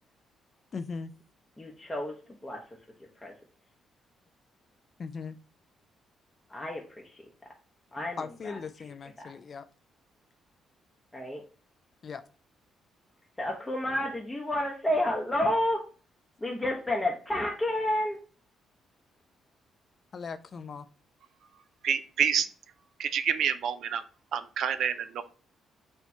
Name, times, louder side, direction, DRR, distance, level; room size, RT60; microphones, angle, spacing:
voice 1, 0.7-1.1 5.0-5.4 8.0-9.7 12.0-12.2 20.1-20.9, left 5 dB, 45° left, 13 dB, 0.3 m, -39 dB
voice 2, 1.6-2.2 2.4-2.6 3.2-3.3 6.5-7.2 7.9-8.6 9.2-9.3 11.1-11.4 13.4-15.8 16.4-18.2, left 1 dB, 15° left, -1 dB, 0.7 m, -30 dB
voice 3, 21.8-22.5 23.0-24.0 24.3-25.2, right 8 dB, 70° right, 11 dB, 0.4 m, -28 dB
4.3 x 2.2 x 4.1 m, 0.39 s
cardioid pair, 90°, 0 cm